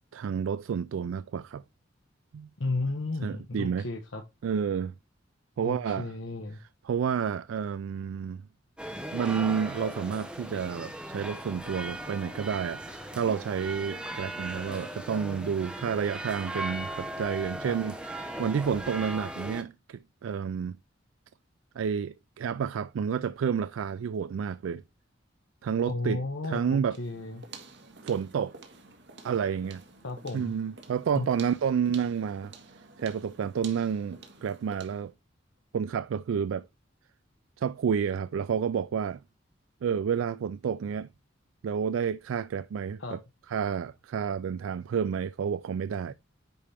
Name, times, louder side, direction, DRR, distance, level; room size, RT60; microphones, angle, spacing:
voice 1, 0.1-1.6 2.3-2.5 3.2-3.8 4.4-4.9 5.6-6.1 6.9-8.4 9.1-17.9 18.4-20.8 21.8-24.8 25.6-26.2 26.5-27.0 28.0-28.5 29.2-29.8 30.3-32.5 33.0-35.1 35.7-36.7 37.6-39.2 39.8-41.1 41.6-43.2 43.5-46.1, right 7 dB, 90° right, 0.3 m, -30 dB
voice 2, 2.6-4.2 5.6-6.6 17.6-17.8 25.9-27.4 30.0-30.5 31.1-31.3 43.0-43.2, left 2 dB, 70° left, 1.1 m, -33 dB
sound 1, 8.8-19.6, right 1 dB, 5° right, 1.1 m, -38 dB
sound 2, 26.9-35.1, right 4 dB, 65° right, 1.8 m, -50 dB
9.8 x 4.3 x 3.4 m
head